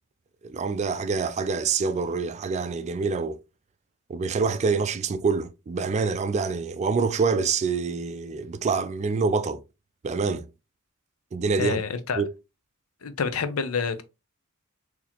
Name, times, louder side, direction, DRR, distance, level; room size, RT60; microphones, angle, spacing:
voice 1, 0.4-3.4 4.1-9.6 10.0-10.5 11.3-11.8 12.2-12.3, right 4 dB, 30° right, 0.3 m, -26 dB
voice 2, 11.6-12.2 13.0-14.0, left 5 dB, 90° left, 0.6 m, -28 dB
4.0 x 2.8 x 2.8 m
head